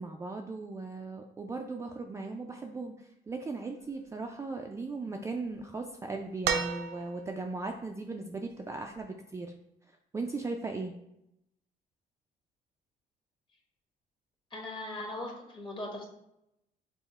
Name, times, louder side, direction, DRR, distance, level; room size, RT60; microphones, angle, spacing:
voice 1, 0.0-9.5 10.1-10.9, right 3 dB, 15° right, 2 dB, 0.3 m, -38 dB
sound 1, 6.4-7.5 9.0-9.1, right 7 dB, 80° right, 0.5 m, -32 dB
voice 2, 14.5-16.1, left 1 dB, 30° left, 1 dB, 1.2 m, -39 dB
5.7 x 2.1 x 4.1 m, 0.83 s
cardioid pair, 110°, 17 cm